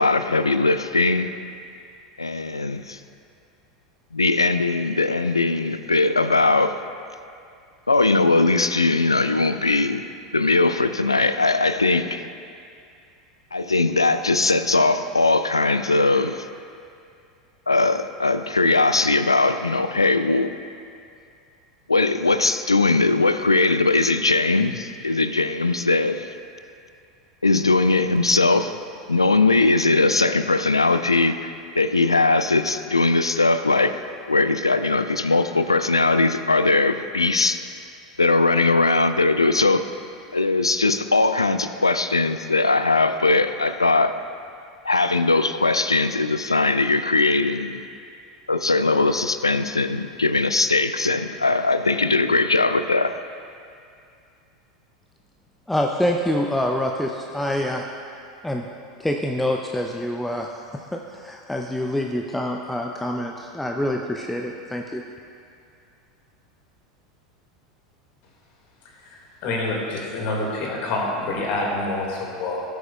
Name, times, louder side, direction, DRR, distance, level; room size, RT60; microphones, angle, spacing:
voice 1, 0.0-1.3 2.2-3.0 4.1-6.8 7.9-10.1 10.3-12.2 13.5-16.5 17.7-20.6 21.9-26.3 27.4-28.7 29.1-34.0 34.3-37.6 38.2-39.9 40.3-44.2 44.8-47.8 48.5-53.1, left 3 dB, 85° left, 11 dB, 0.3 m, -20 dB
voice 2, 55.7-57.9 58.4-58.7 59.0-60.5 60.9-65.0, left 1 dB, 5° left, 2 dB, 0.5 m, -26 dB
voice 3, 69.0-72.6, left 2 dB, 45° left, -1 dB, 2.0 m, -27 dB
17.0 x 7.8 x 2.3 m, 2.4 s
figure-of-eight pair, 80°, 3 cm